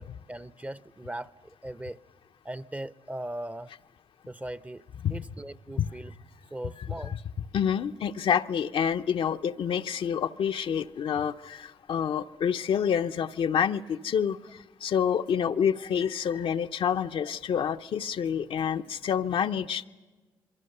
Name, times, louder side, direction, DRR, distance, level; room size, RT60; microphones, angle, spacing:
voice 1, 0.0-2.0 2.4-3.7 4.3-4.8 5.1-6.1 6.5-7.1, right 1 dB, 15° right, 0.7 m, -39 dB
voice 2, 6.8-7.2 7.5-14.4 14.8-19.9, left 8 dB, 70° left, 0.7 m, -28 dB
27.5 x 22.5 x 6.7 m
supercardioid pair, 55°, 10 cm